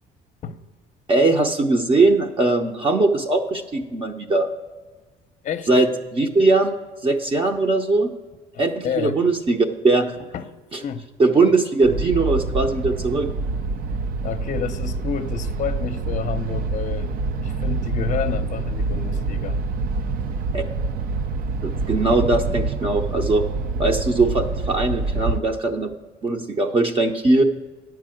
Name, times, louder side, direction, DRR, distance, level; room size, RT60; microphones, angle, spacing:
voice 1, 1.1-4.5 5.7-6.7 7.0-8.1 8.6-10.1 10.7-10.8 11.2-13.3 20.5-20.6 21.6-23.4 23.8-25.9 26.2-27.4, right 3 dB, 30° right, 0.8 m, -20 dB
voice 2, 8.8-9.2 10.3-10.5 10.8-11.0 14.2-17.1 17.4-19.6, left 7 dB, 45° left, 0.6 m, -29 dB
sound 1, 11.8-25.4, right 3 dB, 60° right, 0.6 m, -26 dB
9.9 x 4.7 x 7.7 m
cardioid pair, 110°, 17 cm